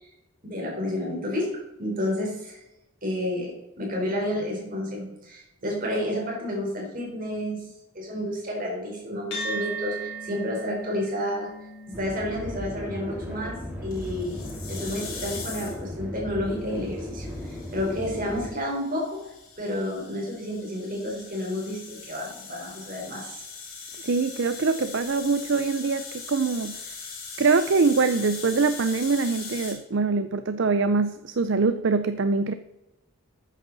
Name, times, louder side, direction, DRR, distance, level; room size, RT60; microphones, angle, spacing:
voice 1, 0.4-2.6 3.0-11.5 11.9-14.4 14.7-19.3 19.6-23.4, left 1 dB, 40° right, -1 dB, 4.0 m, -30 dB
sound 1, 9.3-18.0, right 2 dB, 50° left, 4.0 m, -40 dB
sound 2, 11.9-18.5, equal, 10° right, 3.1 m, -36 dB
sound 3, 13.9-15.9 16.9-29.7, left 5 dB, 70° left, 4.6 m, -41 dB
voice 2, 24.0-26.8 27.4-32.5, right 4 dB, 55° right, 11 dB, 0.5 m, -23 dB
12.5 x 9.2 x 4.0 m, 0.91 s
head